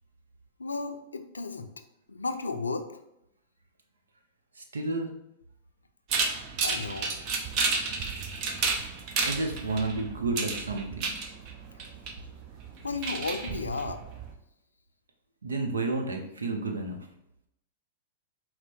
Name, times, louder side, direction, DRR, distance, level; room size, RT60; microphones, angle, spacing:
voice 1, 0.6-1.7 2.1-2.9 6.6-7.2 12.8-14.0, left 3 dB, 90° left, 8 dB, 0.4 m, -33 dB
voice 2, 4.6-5.1 9.2-11.1 15.4-17.1, right 3 dB, 85° right, 3 dB, 0.7 m, -31 dB
sound 1, 6.1-14.3, right 4 dB, 45° right, 0.6 m, -32 dB
4.4 x 2.1 x 4.3 m, 0.82 s
hypercardioid pair, 105°, 0 cm